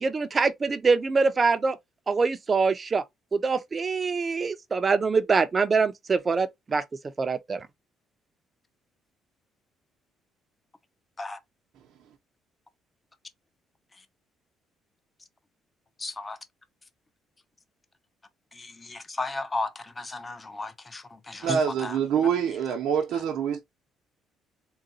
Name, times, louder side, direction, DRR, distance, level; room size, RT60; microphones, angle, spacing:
voice 1, 0.0-1.8 2.1-3.0 3.3-6.8 7.2-7.7 21.5-21.6, right 4 dB, 30° right, 0.5 m, -24 dB
voice 2, 16.0-16.4 18.5-22.0 23.1-23.2, left 3 dB, 20° left, 0.6 m, -35 dB
voice 3, 21.4-23.6, right 7 dB, 75° right, 0.7 m, -25 dB
3.9 x 2.2 x 2.7 m
cardioid pair, 115°, 0 cm